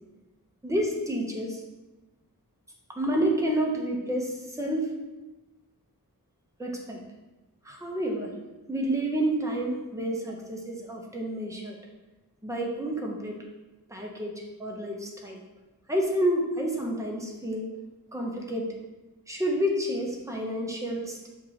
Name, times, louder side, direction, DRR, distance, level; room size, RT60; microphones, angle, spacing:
voice 1, 0.6-1.6 2.9-4.9 6.6-7.0 7.6-8.3 8.7-11.8 12.4-13.4 13.9-14.3 14.6-15.4 15.9-17.7 18.1-18.7 19.3-21.3, right 1 dB, 10° right, 0 dB, 0.8 m, -29 dB
6.6 x 2.5 x 2.9 m, 1.1 s
wide cardioid pair, 55°, 35 cm